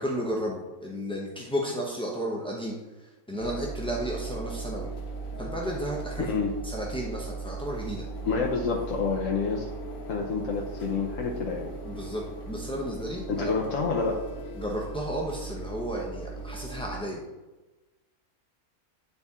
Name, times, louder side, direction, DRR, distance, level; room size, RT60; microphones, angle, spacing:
voice 1, 0.0-4.9 5.4-6.4 6.6-8.0 11.8-13.5 14.6-17.2, equal, 10° left, -3 dB, 0.4 m, -33 dB
sound 1, 3.4-17.0, right 3 dB, 90° left, 1.6 m, -38 dB
voice 2, 6.2-6.5 8.2-9.7 10.1-11.6 13.3-14.3, left 4 dB, 65° left, -1 dB, 1.1 m, -28 dB
9.1 x 4.1 x 3.6 m, 1.1 s
omnidirectional pair, 1.6 m